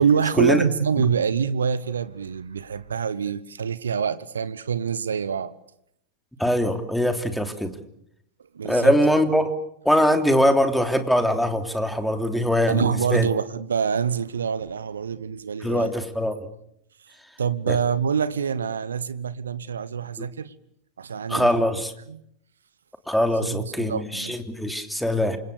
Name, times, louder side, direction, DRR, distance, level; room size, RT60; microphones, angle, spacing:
voice 1, 0.0-5.5 8.5-8.9 12.7-15.9 17.4-20.5 21.0-21.6 22.1-22.2 23.4-24.4, right 7 dB, 70° right, 17 dB, 1.0 m, -25 dB
voice 2, 6.4-7.7 8.6-9.5 9.8-13.3 15.6-16.3 17.7-17.8 20.2-20.3 21.3-21.9 23.1-25.4, equal, ahead, 7 dB, 3.1 m, -22 dB
28.5 x 26.0 x 6.8 m, 0.75 s
figure-of-eight pair, 90°, 0 cm